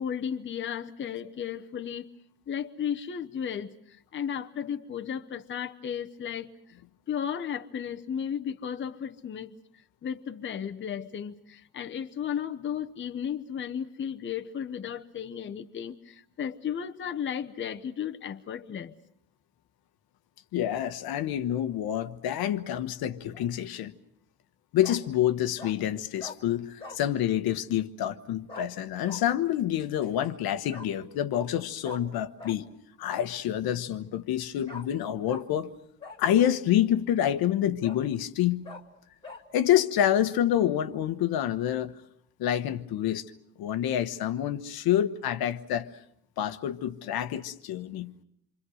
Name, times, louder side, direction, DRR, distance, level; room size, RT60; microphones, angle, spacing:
voice 1, 0.0-2.1 2.5-6.5 7.1-9.5 10.0-18.9, left 8 dB, 30° left, 0.9 m, -34 dB
voice 2, 20.5-23.9 24.7-32.7 33.0-35.7 36.2-38.7 39.5-41.9 42.4-43.2 43.6-45.9 46.4-48.1, left 11 dB, 70° left, 1.2 m, -27 dB
Bark, 23.1-23.5 24.8-25.0 25.6-25.8 26.2-26.4 26.8-27.0 28.5-28.7 29.0-29.2 30.7-30.9 31.8-32.0 32.4-32.6 34.7-34.9 35.3-35.4 36.0-36.6 37.2-37.3 37.8-38.0 38.6-38.8 39.2-39.4, left 3 dB, 15° left, 2.4 m, -43 dB
27.5 x 24.5 x 6.4 m
cardioid pair, 135°, 38 cm